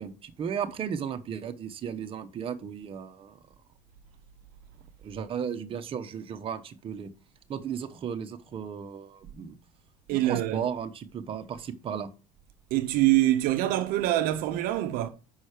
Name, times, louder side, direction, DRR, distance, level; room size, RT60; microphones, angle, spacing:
voice 1, 0.0-3.4 5.0-7.1 7.5-9.6 10.1-12.1, right 7 dB, 35° right, 0.9 m, -35 dB
voice 2, 10.1-10.6 12.7-15.1, right 15 dB, 75° right, 0.7 m, -25 dB
6.2 x 5.6 x 5.0 m
cardioid pair, 125°, 15 cm